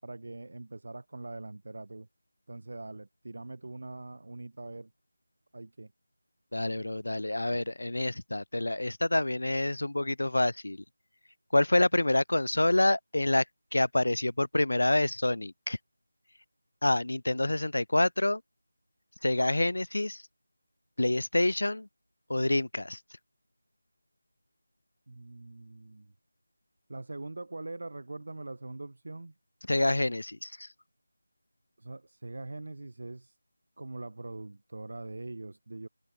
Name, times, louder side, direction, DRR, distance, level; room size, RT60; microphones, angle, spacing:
voice 1, 0.0-2.1 2.5-4.9 5.5-5.9 8.3-8.4 25.1-26.1 26.9-29.3 31.8-33.4 33.8-35.9, right 2 dB, 45° right, 4.7 m, -42 dB
voice 2, 6.5-10.8 11.5-13.4 13.7-15.8 16.8-18.4 19.2-20.2 21.0-21.9 22.3-23.0 29.7-30.7, left 1 dB, 80° left, 2.0 m, -27 dB
figure-of-eight pair, 180°, 0 cm